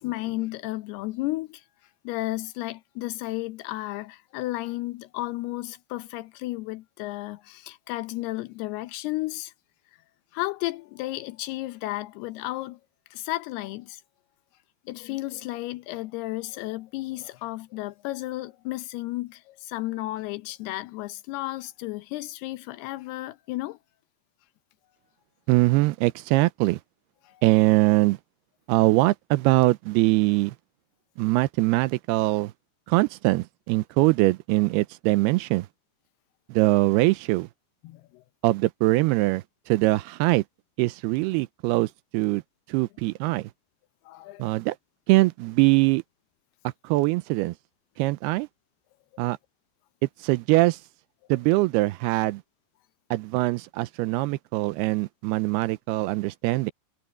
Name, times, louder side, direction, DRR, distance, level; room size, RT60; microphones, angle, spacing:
voice 1, 0.0-1.6 2.0-9.5 10.3-12.8 13.1-14.0 14.9-23.8 27.2-27.4 37.8-38.2 44.1-44.5 49.1-49.3, left 18 dB, 80° left, 2.6 m, -33 dB
voice 2, 25.5-26.8 27.4-28.2 28.7-30.5 31.2-32.5 32.9-35.7 36.5-37.5 38.4-40.4 40.8-42.4 42.7-43.5 44.4-44.8 45.1-46.0 46.8-47.5 48.0-48.5 49.2-49.4 50.2-50.8 51.3-52.4 53.1-56.7, right 20 dB, 80° right, 2.4 m, -22 dB
omnidirectional pair, 5.0 m